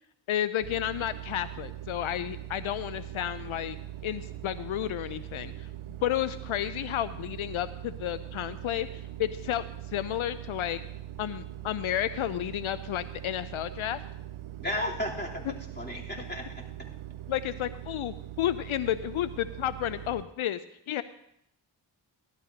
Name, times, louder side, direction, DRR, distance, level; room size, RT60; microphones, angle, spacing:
voice 1, 0.3-3.8 4.0-5.7 6.0-10.8 11.2-14.0 17.3-20.6 20.9-21.0, left 12 dB, 80° left, 14 dB, 0.5 m, -31 dB
sound 1, 0.6-20.2, right 13 dB, 90° right, 0.6 m, -42 dB
voice 2, 14.6-16.6, left 1 dB, 20° left, -3 dB, 3.3 m, -34 dB
16.5 x 12.0 x 2.8 m, 0.77 s
cardioid pair, 40°, 48 cm